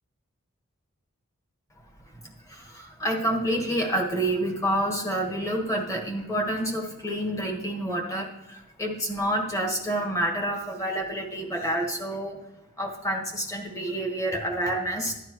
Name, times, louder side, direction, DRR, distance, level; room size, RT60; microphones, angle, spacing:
voice 1, 2.5-12.4 12.8-15.1, right 1 dB, 15° left, 0 dB, 1.5 m, -28 dB
11.5 x 10.5 x 3.1 m, 0.88 s
head